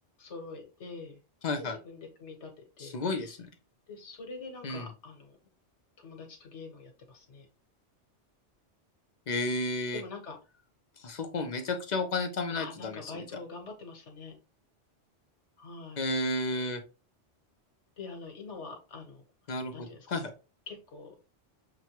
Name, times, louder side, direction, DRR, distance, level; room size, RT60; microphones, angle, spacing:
voice 1, 0.2-1.2 1.6-2.5 2.8-3.3 3.9-5.4 6.0-7.5 9.9-10.4 12.5-14.3 15.6-16.1 18.0-19.2 19.7-20.1 20.7-21.1, left 3 dB, 75° left, 3 dB, 1.5 m, -44 dB
voice 2, 1.4-1.8 2.8-3.5 4.6-4.8 9.3-10.0 11.0-13.0 16.0-16.8 19.5-20.3, left 2 dB, 45° left, 6 dB, 0.6 m, -32 dB
6.0 x 2.2 x 2.9 m, 0.31 s
omnidirectional pair, 1.2 m